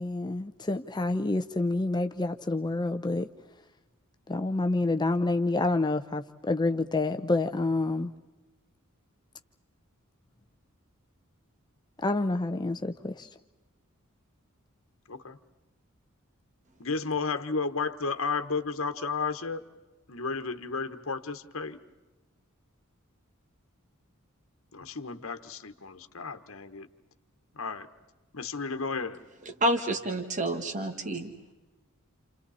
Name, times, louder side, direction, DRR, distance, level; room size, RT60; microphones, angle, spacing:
voice 1, 0.0-3.3 4.3-8.1 12.0-13.3, left 2 dB, 20° left, 7 dB, 0.6 m, -28 dB
voice 2, 16.8-19.6 20.1-21.8 24.7-26.9 27.6-27.9 28.3-29.2, left 4 dB, 70° left, 8 dB, 1.2 m, -33 dB
voice 3, 29.6-31.3, right 1 dB, 35° right, 6 dB, 1.8 m, -28 dB
29.5 x 29.5 x 4.2 m, 1.1 s
head